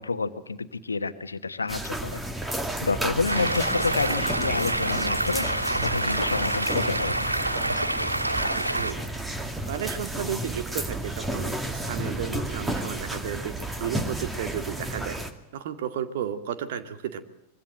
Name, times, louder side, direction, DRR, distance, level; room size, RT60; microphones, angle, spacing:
voice 1, 0.0-2.2 2.5-5.5 5.8-7.3, left 4 dB, 75° left, 11 dB, 1.3 m, -29 dB
sound 1, 1.7-15.3, right 1 dB, 10° right, 2.2 m, -32 dB
Stream, 3.3-8.9, right 1 dB, 85° right, 1.7 m, -27 dB
voice 2, 8.5-9.0 9.7-15.2 15.5-17.2, right 9 dB, 55° right, 8 dB, 2.2 m, -33 dB
24.5 x 22.5 x 7.8 m, 0.75 s
figure-of-eight pair, 90°, 0 cm